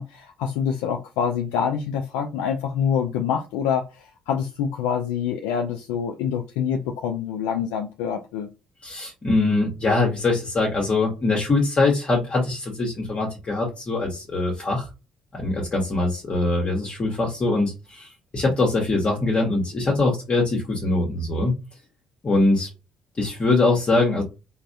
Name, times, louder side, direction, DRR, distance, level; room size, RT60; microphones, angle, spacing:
voice 1, 0.0-8.5, left 7 dB, 80° left, 0.3 m, -26 dB
voice 2, 8.8-14.9 15.3-21.5 22.2-22.7 23.2-24.2, left 2 dB, 40° left, 1.0 m, -22 dB
3.2 x 2.1 x 2.6 m
hypercardioid pair, 55°, 3 cm